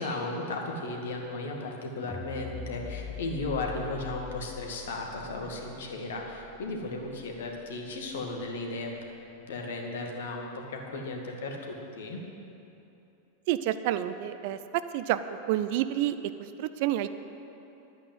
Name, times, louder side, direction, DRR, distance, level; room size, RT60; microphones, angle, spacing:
voice 1, 0.0-8.9 9.5-12.2, left 2 dB, 60° left, 1 dB, 1.9 m, -35 dB
sound 1, 2.1-8.4, left 5 dB, 15° left, 0.8 m, -44 dB
voice 2, 13.5-15.2 15.5-17.1, right 13 dB, 50° right, 12 dB, 0.5 m, -29 dB
11.5 x 9.0 x 7.9 m, 2.9 s
figure-of-eight pair, 90°, 0 cm